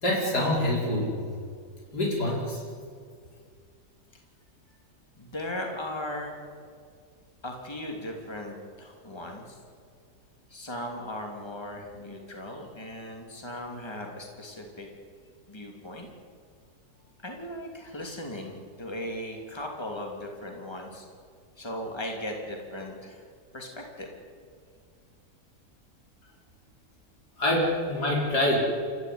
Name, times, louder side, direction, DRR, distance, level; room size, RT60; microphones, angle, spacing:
voice 1, 0.0-1.2 1.9-2.6 27.4-28.6, left 1 dB, 75° left, -3 dB, 5.6 m, -25 dB
voice 2, 5.2-6.4 7.4-9.6 10.5-14.9 15.5-16.1 17.2-21.1 21.6-23.2 23.5-24.1, left 1 dB, 15° left, 1 dB, 3.1 m, -37 dB
28.5 x 14.0 x 9.5 m, 2.2 s
omnidirectional pair, 1.8 m